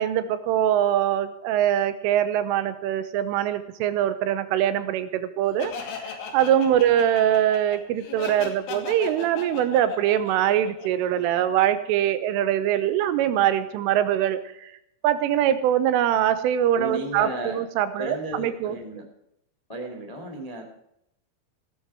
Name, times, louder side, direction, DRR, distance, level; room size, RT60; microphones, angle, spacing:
voice 1, 0.0-5.7 6.1-14.7 15.0-18.8, right 11 dB, 80° right, 11 dB, 3.3 m, -23 dB
Laughter, 5.6-11.3, left 5 dB, 70° left, 4.7 m, -37 dB
voice 2, 16.7-17.6 18.0-19.0 19.7-20.6, right 1 dB, 20° left, 2 dB, 0.9 m, -34 dB
17.0 x 13.0 x 4.6 m, 0.76 s
omnidirectional pair, 5.9 m